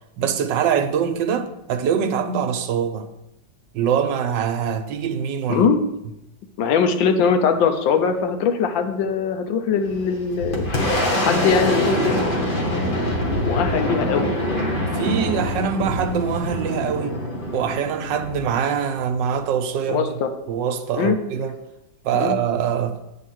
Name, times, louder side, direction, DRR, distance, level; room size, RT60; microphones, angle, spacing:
voice 1, 0.2-3.1 3.7-5.7 14.9-17.2 17.5-20.1 20.5-21.6 22.0-23.0, right 7 dB, 80° right, 1.3 m, -23 dB
voice 2, 6.6-10.7 11.2-12.3 13.4-14.7 19.9-20.3 21.0-21.2 22.1-22.4, left 6 dB, 85° left, 1.5 m, -21 dB
Boom, 9.9-19.3, left 1 dB, 30° left, 1.3 m, -24 dB
9.0 x 3.7 x 6.0 m
omnidirectional pair, 2.0 m